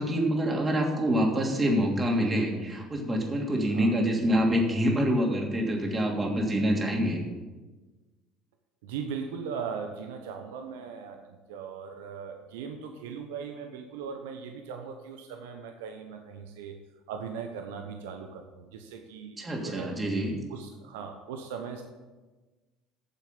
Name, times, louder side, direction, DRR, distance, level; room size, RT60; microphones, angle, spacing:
voice 1, 0.0-7.2 19.4-20.3, equal, 25° right, 0 dB, 2.9 m, -26 dB
voice 2, 3.7-4.0 8.8-16.8 17.1-20.0 20.5-21.8, right 6 dB, 75° right, 5 dB, 0.9 m, -39 dB
9.7 x 7.2 x 6.9 m, 1.2 s
hypercardioid pair, 70°, 0 cm